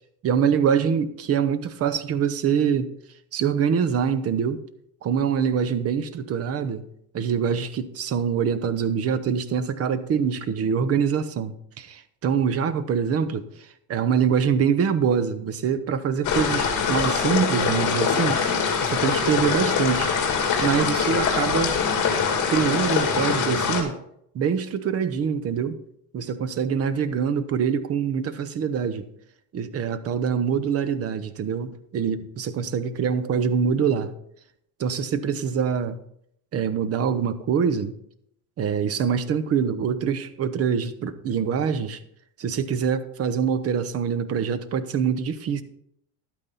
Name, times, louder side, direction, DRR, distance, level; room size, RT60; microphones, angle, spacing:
voice 1, 0.2-2.9 3.3-4.6 5.0-6.8 7.1-13.5 13.9-18.4 18.8-20.1 20.6-21.8 22.5-24.0 24.3-25.8 26.1-29.0 29.5-34.1 34.8-36.0 36.5-37.9 38.6-42.0 42.4-45.6, right 7 dB, 30° right, 0.7 m, -24 dB
sound 1, 16.2-23.8, left 6 dB, 40° left, 2.6 m, -23 dB
12.0 x 9.0 x 4.0 m
cardioid pair, 145°, 47 cm